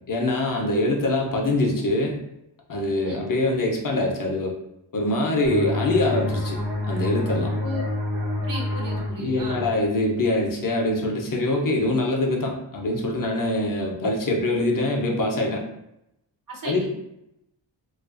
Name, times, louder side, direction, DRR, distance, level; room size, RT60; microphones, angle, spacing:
voice 1, 0.1-2.2 2.7-4.5 4.9-6.6 6.9-7.5 9.2-15.6 16.6-16.9, left 2 dB, 50° left, 1 dB, 0.5 m, -24 dB
sound 1, 5.4-10.8, left 1 dB, 80° right, 0.8 m, -29 dB
voice 2, 8.4-9.7 16.5-16.9, right 1 dB, 50° right, 0 dB, 0.6 m, -35 dB
2.4 x 2.2 x 2.4 m, 0.83 s
wide cardioid pair, 110°, 44 cm